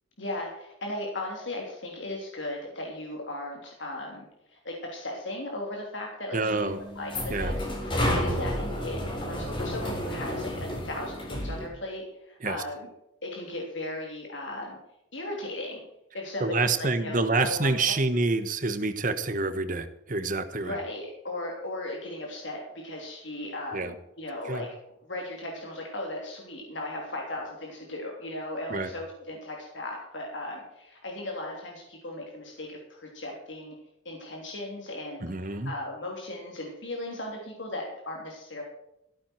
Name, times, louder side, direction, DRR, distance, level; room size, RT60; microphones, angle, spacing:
voice 1, 0.2-12.9 13.2-14.8 15.1-15.8 16.1-17.9 20.6-24.7 25.1-33.7 34.0-38.6, left 1 dB, 70° left, -1 dB, 3.2 m, -37 dB
voice 2, 6.3-6.8 7.3-7.6 8.0-8.2 12.4-12.6 16.4-20.8 23.7-23.9 24.5-24.6 28.7-28.9 35.2-35.7, right 3 dB, 40° right, 10 dB, 1.2 m, -27 dB
sound 1, 6.4-11.7, left 1 dB, 25° left, 4.0 m, -31 dB
15.0 x 12.5 x 4.6 m, 0.85 s
head